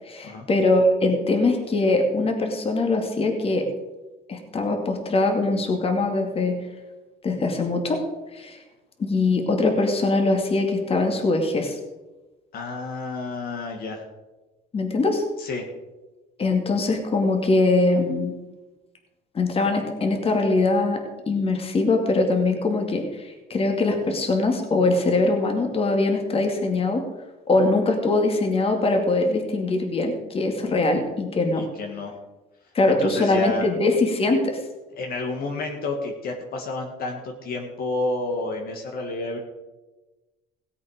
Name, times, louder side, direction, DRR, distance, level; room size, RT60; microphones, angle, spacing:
voice 1, 0.1-3.7 4.3-6.6 7.2-8.0 8.3-8.6 9.0-11.8 14.7-15.2 16.4-18.3 19.3-21.0 21.3-27.0 27.5-31.7 32.7-34.6, left 2 dB, 35° left, 3 dB, 2.3 m, -22 dB
voice 2, 12.5-14.0 15.4-15.7 31.6-32.2 33.0-33.7 35.0-39.4, left 2 dB, 60° left, 2 dB, 2.0 m, -30 dB
17.0 x 8.2 x 5.0 m, 1.1 s
cardioid pair, 110°, 17 cm